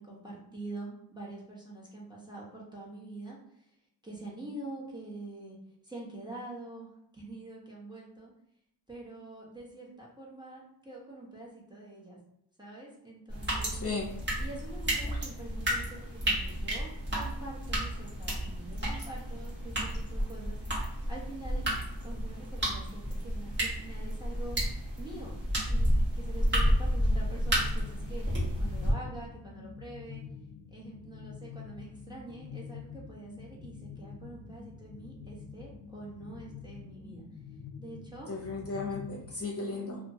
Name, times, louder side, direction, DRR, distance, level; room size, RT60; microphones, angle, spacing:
voice 1, 0.0-3.7 4.0-5.6 5.8-8.3 8.9-12.2 12.6-13.7 14.4-21.6 22.0-24.6 25.0-25.4 25.7-30.2 30.7-37.3 37.8-38.3, right 2 dB, 10° right, -4 dB, 1.0 m, -45 dB
sound 1, 13.3-28.9, equal, 25° right, 1.3 m, -31 dB
voice 2, 13.7-14.1 38.3-40.0, left 3 dB, 35° left, -3 dB, 0.8 m, -35 dB
sound 2, 27.2-39.4, left 6 dB, 55° left, 0.5 m, -47 dB
2.7 x 2.5 x 2.7 m, 0.78 s
cardioid pair, 60°, 42 cm